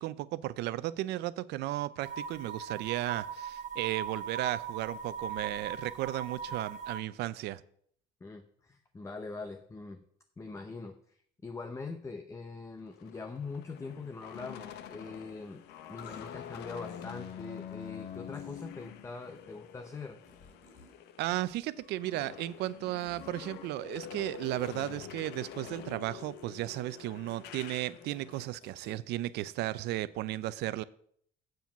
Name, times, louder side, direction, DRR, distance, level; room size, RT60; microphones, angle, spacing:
voice 1, 0.0-7.6 21.2-30.8, right 15 dB, 80° right, 16 dB, 0.5 m, -35 dB
sound 1, 2.0-7.0, right 7 dB, 50° right, 1.1 m, -39 dB
voice 2, 8.2-10.0 10.4-15.6 15.9-20.2, left 4 dB, 15° left, 7 dB, 0.7 m, -43 dB
sound 2, 12.9-21.3 21.6-28.5, left 9 dB, 80° left, 0.7 m, -46 dB
sound 3, 16.0-16.3 16.9-17.0 18.3-18.7 20.2-20.9 21.2-22.1 23.0-23.3 24.4-27.0 27.3-27.4 27.7-27.8 28.1-29.0, left 2 dB, 50° left, 3.7 m, -58 dB
7.7 x 7.1 x 5.7 m, 0.63 s
cardioid pair, 110°, 17 cm